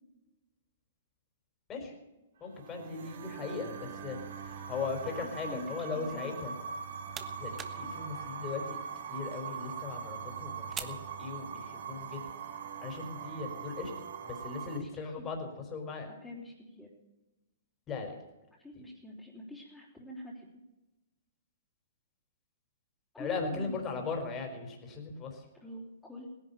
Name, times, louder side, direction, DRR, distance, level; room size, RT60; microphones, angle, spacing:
voice 1, 2.4-6.5 7.4-8.8 9.1-12.2 12.8-13.9 14.2-16.1 17.9-18.2 23.2-25.4, left 4 dB, 25° left, 3 dB, 4.3 m, -38 dB
sound 1, 2.5-14.8, right 6 dB, 65° right, 2.3 m, -42 dB
voice 2, 5.0-6.4 14.8-15.3 16.2-16.9 18.6-20.5 23.1-24.0 25.6-26.3, left 1 dB, 5° left, -7 dB, 3.7 m, -45 dB
sound 2, 6.6-11.9, right 8 dB, 20° right, 1.3 m, -49 dB
17.5 x 11.0 x 7.0 m, 1.0 s
hypercardioid pair, 125°, 0 cm